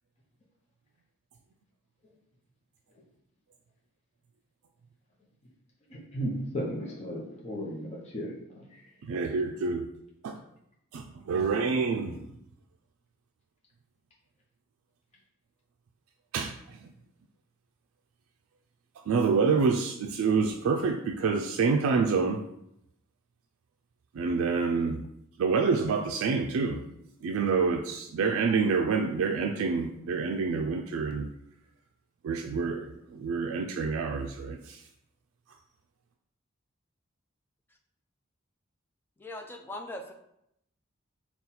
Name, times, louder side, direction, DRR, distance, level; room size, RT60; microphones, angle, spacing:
voice 1, 5.9-8.9 11.9-12.2, equal, 30° left, -4 dB, 0.7 m, -36 dB
voice 2, 9.0-9.9 10.2-10.3 10.9-12.1 16.3-16.9 19.1-22.4 24.1-25.0 25.4-26.8 27.2-31.3 32.2-34.8, right 5 dB, 85° right, 3 dB, 0.3 m, -27 dB
voice 3, 39.2-40.1, left 1 dB, 10° left, 4 dB, 0.3 m, -40 dB
3.9 x 2.3 x 4.1 m, 0.78 s
head